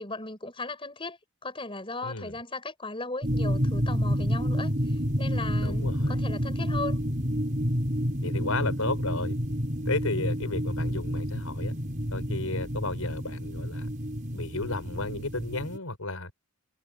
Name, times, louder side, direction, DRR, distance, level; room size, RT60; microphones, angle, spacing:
voice 1, 0.0-4.7 5.2-7.0, left 2 dB, 25° left, 5.2 m, -37 dB
voice 2, 2.0-2.4 5.6-6.2 8.2-9.4 9.9-11.8 12.1-13.9 14.3-16.3, left 2 dB, 90° left, 5.7 m, -33 dB
sound 1, 3.2-15.8, equal, 35° right, 5.5 m, -29 dB
head